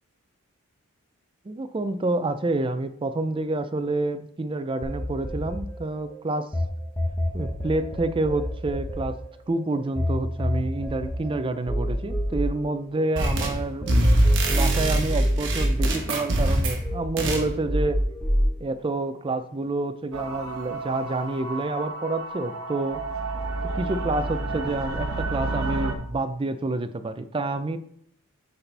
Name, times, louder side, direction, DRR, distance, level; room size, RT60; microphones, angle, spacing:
voice 1, 1.4-6.5 7.3-9.2 9.5-13.9 14.5-18.0 18.6-23.0 23.8-27.8, right 2 dB, 25° right, 11 dB, 0.4 m, -28 dB
sound 1, 4.8-6.6 6.9-13.5 13.8-16.5 16.8-18.5, equal, 10° left, 1.1 m, -27 dB
sound 2, 13.2-13.6 13.9-16.8 17.2-17.5, right 1 dB, 60° right, 1.3 m, -23 dB
sound 3, 20.1-25.9, right 3 dB, 85° right, 1.0 m, -31 dB
10.0 x 4.1 x 3.4 m, 0.67 s
head